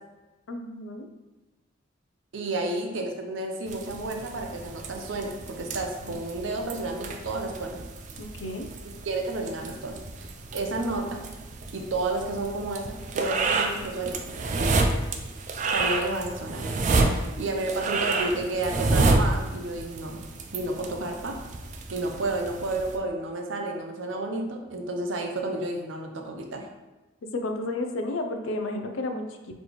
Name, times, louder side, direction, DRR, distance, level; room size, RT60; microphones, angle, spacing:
voice 1, 0.5-1.1 6.0-6.2 8.2-8.7 27.3-29.6, left 2 dB, 80° left, 5 dB, 0.5 m, -32 dB
voice 2, 2.3-7.8 9.0-11.2 11.7-14.8 15.7-16.6 17.1-20.2 20.5-21.4 21.9-26.7, right 2 dB, 70° right, 3 dB, 0.6 m, -31 dB
sound 1, 3.7-23.0, right 3 dB, 40° right, 0.3 m, -30 dB
4.1 x 3.2 x 3.1 m, 1.1 s
head